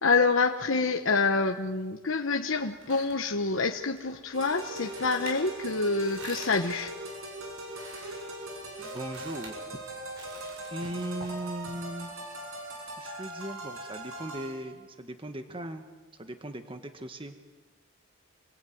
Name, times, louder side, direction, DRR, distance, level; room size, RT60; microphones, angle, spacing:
voice 1, 0.0-6.9, left 4 dB, 65° left, 4 dB, 1.2 m, -27 dB
sound 1, 2.5-12.2, right 2 dB, 70° right, 6.9 m, -49 dB
sound 2, 4.3-14.6, right 1 dB, 85° right, 6.5 m, -40 dB
voice 2, 8.8-9.6 10.7-12.1 13.0-15.8 16.2-17.3, right 1 dB, 25° right, 7 dB, 1.6 m, -38 dB
28.0 x 22.0 x 9.4 m, 1.3 s
head